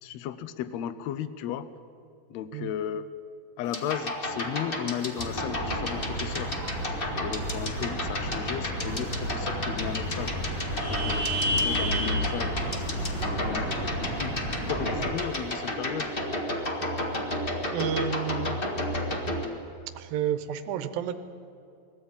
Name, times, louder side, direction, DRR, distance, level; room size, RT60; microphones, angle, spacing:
voice 1, 0.0-1.7 2.3-3.1 3.6-6.6 7.2-10.4 10.9-14.4 14.7-16.1, left 9 dB, 85° left, 14 dB, 1.5 m, -35 dB
sound 1, 3.6-19.5, left 1 dB, 35° left, 0.9 m, -33 dB
sound 2, 5.2-15.0, equal, 50° left, 5.2 m, -31 dB
voice 2, 17.7-18.6 20.0-21.1, right 8 dB, 90° right, 9 dB, 2.7 m, -30 dB
21.0 x 14.5 x 8.8 m, 2.6 s
omnidirectional pair, 4.0 m